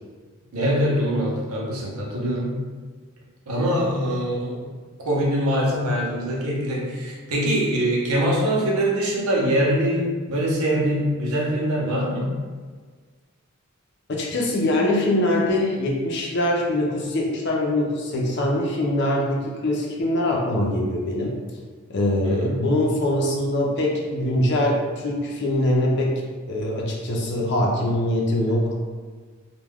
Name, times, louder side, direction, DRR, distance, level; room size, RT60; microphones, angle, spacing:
voice 1, 0.5-2.6 3.5-4.7 5.0-12.4 22.2-22.6, equal, 85° right, -3 dB, 0.7 m, -23 dB
voice 2, 14.1-21.4 21.9-26.2 26.5-28.7, left 1 dB, 50° left, -2 dB, 0.5 m, -23 dB
2.3 x 2.2 x 3.4 m, 1.5 s
head